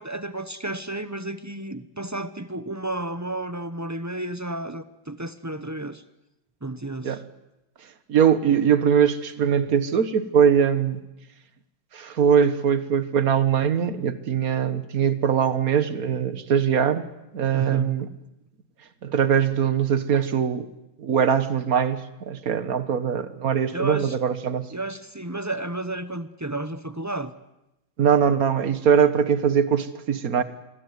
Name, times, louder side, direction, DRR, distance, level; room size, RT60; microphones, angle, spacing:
voice 1, 0.0-6.0 6.6-7.2 17.5-18.0 23.7-24.2 24.7-27.3, right 2 dB, 20° right, 12 dB, 0.4 m, -32 dB
voice 2, 8.1-11.0 11.9-17.1 17.3-18.1 19.0-20.7 21.0-24.7 28.0-30.4, right 7 dB, 50° right, 13 dB, 1.7 m, -21 dB
26.5 x 21.5 x 9.5 m, 0.93 s
omnidirectional pair, 2.1 m